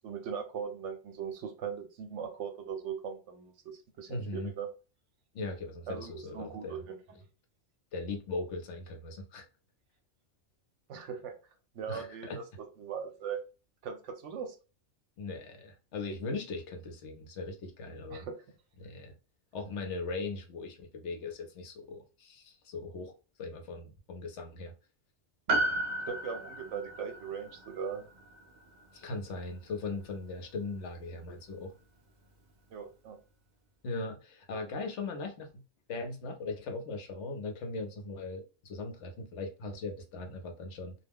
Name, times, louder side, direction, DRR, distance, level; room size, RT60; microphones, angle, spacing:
voice 1, 0.0-4.7 5.9-7.2 10.9-11.3 11.7-12.4 12.8-13.4 13.8-14.5 18.1-18.4 26.1-28.1 32.7-33.2, right 7 dB, 75° right, 0.9 m, -39 dB
voice 2, 4.1-4.5 5.3-6.8 7.9-9.4 11.9-12.4 15.2-18.3 18.8-19.1 19.5-23.1 23.4-24.7 28.9-31.7 33.8-35.5 35.9-40.9, left 3 dB, 70° left, 0.9 m, -39 dB
Piano, 25.5-30.1 30.3-30.4, right 1 dB, 55° right, 0.5 m, -35 dB
2.3 x 2.2 x 3.4 m
omnidirectional pair, 1.3 m